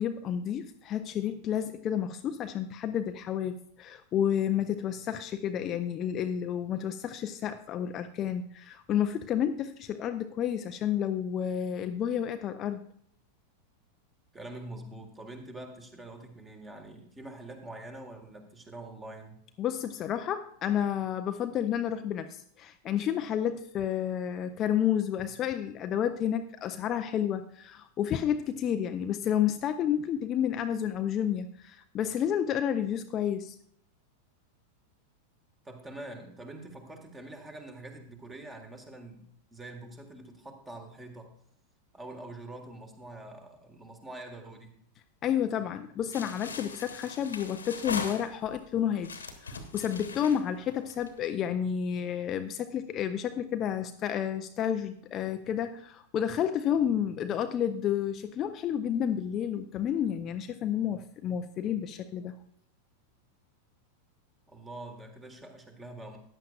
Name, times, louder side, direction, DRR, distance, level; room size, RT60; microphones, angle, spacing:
voice 1, 0.0-12.8 19.6-33.6 45.2-49.1 49.4-62.4, left 9 dB, 30° left, 8 dB, 0.5 m, -30 dB
voice 2, 14.3-19.4 35.6-41.3 41.9-44.8 64.5-66.2, right 2 dB, 15° right, 5 dB, 1.7 m, -45 dB
sound 1, 46.1-48.6 49.0-51.3, left 4 dB, 75° left, 1.2 m, -40 dB
14.0 x 9.9 x 2.4 m, 0.66 s
figure-of-eight pair, 90°, 0 cm